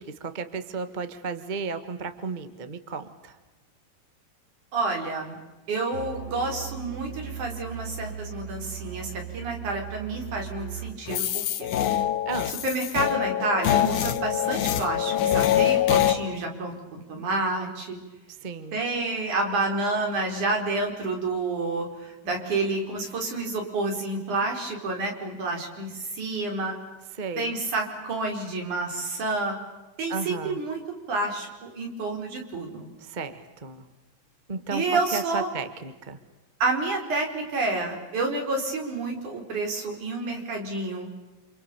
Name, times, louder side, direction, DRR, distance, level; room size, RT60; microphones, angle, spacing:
voice 1, 0.0-3.3 12.2-12.5 18.4-18.8 27.2-27.5 30.1-30.6 33.1-33.3 33.6-33.8 34.5-36.2, right 4 dB, 30° right, 9 dB, 0.8 m, -33 dB
voice 2, 4.7-5.4 5.7-11.4 12.5-18.0 18.7-26.7 27.4-29.5 30.0-30.8 31.1-32.9 34.7-35.5 36.6-41.1, right 2 dB, 65° right, 2 dB, 6.0 m, -29 dB
Musical instrument, 5.9-11.0, right 9 dB, 30° left, 5.9 m, -38 dB
sound 1, 11.1-16.1, left 11 dB, 70° left, 2.5 m, -24 dB
29.5 x 28.0 x 7.0 m, 1.1 s
omnidirectional pair, 3.8 m